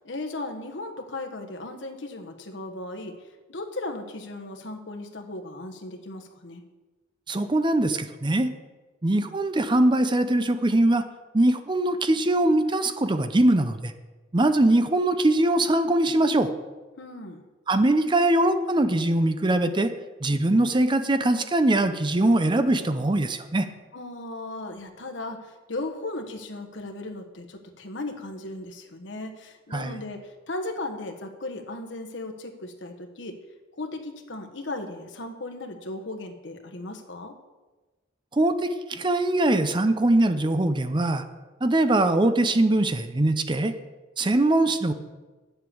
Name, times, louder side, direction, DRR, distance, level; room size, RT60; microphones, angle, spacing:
voice 1, 0.0-6.6 17.0-17.4 23.9-33.4 33.8-37.3, left 2 dB, 70° left, 4 dB, 1.3 m, -36 dB
voice 2, 7.3-8.5 9.0-11.0 11.3-13.9 14.3-16.5 17.7-19.9 20.2-23.7 29.7-29.9 38.3-38.5 38.9-41.2 41.6-43.7 44.2-44.9, right 1 dB, 25° right, 9 dB, 0.6 m, -22 dB
8.9 x 7.8 x 7.0 m, 1.2 s
head